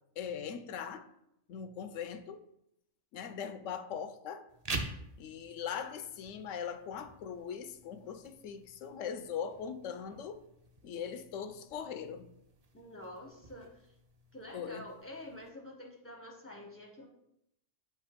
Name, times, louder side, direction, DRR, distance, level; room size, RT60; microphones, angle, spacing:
voice 1, 0.2-1.1 1.5-2.4 3.1-4.5 5.2-10.4 10.8-12.3 14.5-14.9, left 7 dB, 90° left, 1.0 m, -40 dB
sound 1, 4.5-15.5, right 3 dB, 40° right, 0.6 m, -47 dB
voice 2, 12.7-13.7 14.3-17.1, left 1 dB, 15° left, 0.4 m, -47 dB
7.8 x 2.9 x 5.0 m
omnidirectional pair, 1.3 m